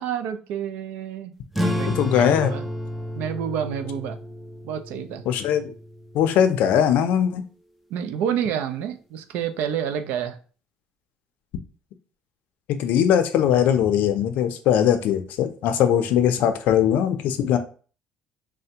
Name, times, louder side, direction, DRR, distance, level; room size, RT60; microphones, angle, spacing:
voice 1, 0.0-2.6 3.1-4.2 4.6-5.2 7.9-10.4, right 9 dB, 80° right, 9 dB, 0.4 m, -29 dB
sound 1, 1.5-6.6, left 1 dB, ahead, 0.3 m, -31 dB
voice 2, 1.9-2.5 5.3-5.7 6.1-7.4 12.8-17.6, left 9 dB, 75° left, 8 dB, 0.4 m, -20 dB
3.3 x 2.1 x 2.7 m, 0.39 s
cardioid pair, 145°, 3 cm